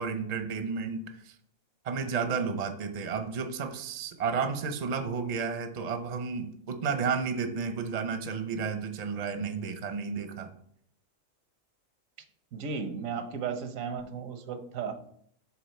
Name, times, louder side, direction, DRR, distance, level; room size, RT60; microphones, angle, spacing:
voice 1, 0.0-1.3 1.8-10.5, right 5 dB, 45° right, 8 dB, 0.6 m, -32 dB
voice 2, 12.5-14.9, right 6 dB, 85° right, 8 dB, 1.1 m, -35 dB
7.2 x 3.7 x 4.3 m, 0.66 s
omnidirectional pair, 1.4 m